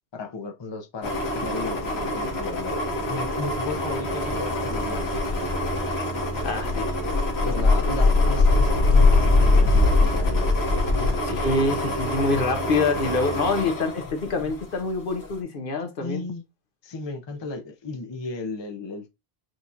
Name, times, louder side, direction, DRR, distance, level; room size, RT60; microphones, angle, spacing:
voice 1, 0.1-2.8 3.1-5.3 7.4-10.5 10.9-11.3 16.0-16.4 16.8-19.1, left 3 dB, 30° left, 0.6 m, -35 dB
sound 1, 1.0-14.7 15.1-15.3, left 2 dB, 75° left, 1.3 m, -23 dB
voice 2, 6.4-6.9 11.2-16.2, left 3 dB, 60° left, 0.8 m, -26 dB
6.2 x 2.3 x 2.7 m
omnidirectional pair, 1.1 m